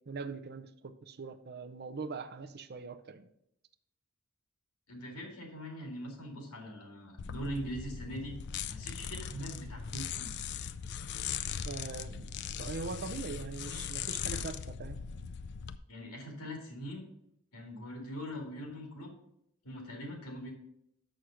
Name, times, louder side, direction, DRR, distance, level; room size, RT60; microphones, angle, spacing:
voice 1, 0.1-3.3 11.6-15.0, right 4 dB, 45° right, 10 dB, 0.6 m, -42 dB
voice 2, 4.9-8.4 8.7-10.3 15.9-17.1 17.5-19.1 19.6-20.5, equal, 85° left, 2 dB, 2.3 m, -42 dB
sound 1, 7.2-15.8, left 7 dB, 50° left, 0.4 m, -39 dB
6.4 x 6.4 x 5.7 m, 0.77 s
head